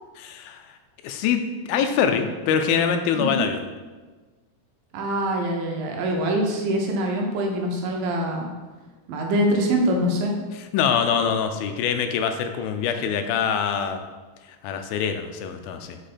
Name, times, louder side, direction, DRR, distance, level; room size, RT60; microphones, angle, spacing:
voice 1, 0.2-0.7 1.0-1.4 1.7-3.6 10.7-14.0 14.6-16.0, left 7 dB, 85° left, 7 dB, 2.3 m, -24 dB
voice 2, 3.2-3.5 4.9-8.5 9.1-10.3, right 1 dB, 75° right, 1 dB, 2.4 m, -24 dB
5.7 x 5.1 x 4.2 m, 1.3 s
omnidirectional pair, 4.2 m